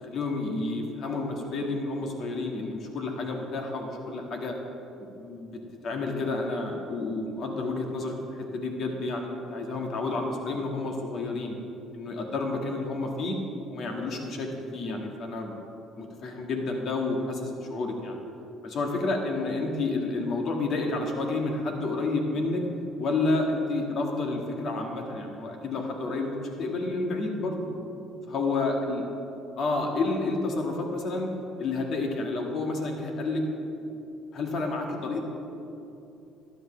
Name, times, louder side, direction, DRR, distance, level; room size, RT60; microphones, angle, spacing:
voice 1, 0.1-4.5 5.0-11.6 11.9-13.4 13.7-15.5 16.0-18.2 18.6-22.6 23.0-27.6 28.3-29.0 29.6-31.3 31.6-33.4 33.8-33.9 34.3-35.2, left 3 dB, 55° left, 2 dB, 1.7 m, -30 dB
12.5 x 11.0 x 3.3 m, 2.9 s
supercardioid pair, 90°, 0 cm